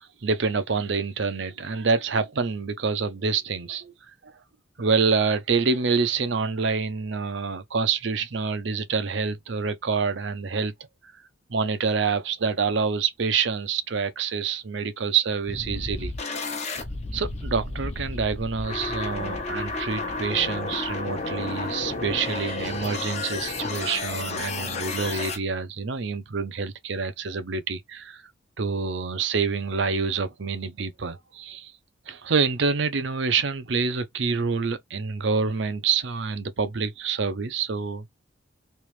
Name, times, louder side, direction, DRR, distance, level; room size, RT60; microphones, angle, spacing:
voice 1, 0.2-3.9 4.2-4.3 4.8-10.7 11.5-16.1 16.7-16.8 17.1-28.2 28.6-31.7 32.1-38.0, right 5 dB, 65° right, 0.6 m, -27 dB
sound 1, 15.5-25.4, left 3 dB, 35° left, 0.8 m, -31 dB
3.2 x 3.0 x 3.1 m
head